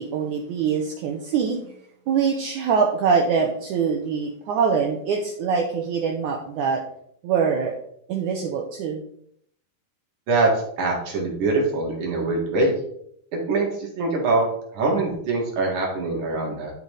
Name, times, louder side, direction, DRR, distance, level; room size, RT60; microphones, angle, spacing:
voice 1, 0.0-1.7 2.1-6.8 7.2-7.8 8.1-9.0, right 6 dB, 75° right, 1 dB, 1.9 m, -23 dB
voice 2, 10.8-12.7 13.3-14.4 14.7-16.7, right 3 dB, 60° right, -1 dB, 3.3 m, -23 dB
11.5 x 5.3 x 3.2 m, 0.69 s
omnidirectional pair, 4.2 m